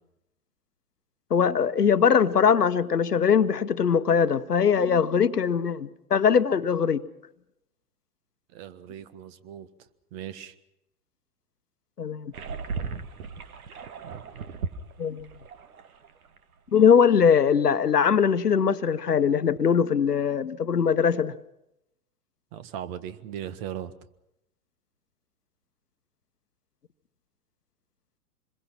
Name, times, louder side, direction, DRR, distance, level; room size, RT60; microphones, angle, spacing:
voice 1, 1.3-7.0 12.0-12.3 15.0-15.3 16.7-21.3, left 7 dB, 80° left, 12 dB, 1.1 m, -21 dB
voice 2, 8.5-9.7 10.1-10.5 22.5-23.9, right 10 dB, 40° right, 13 dB, 1.6 m, -38 dB
sound 1, 12.3-16.4 16.7-16.8 17.2-17.3, right 5 dB, 65° right, 1.8 m, -36 dB
26.0 x 22.0 x 6.0 m, 0.86 s
figure-of-eight pair, 105°, 46 cm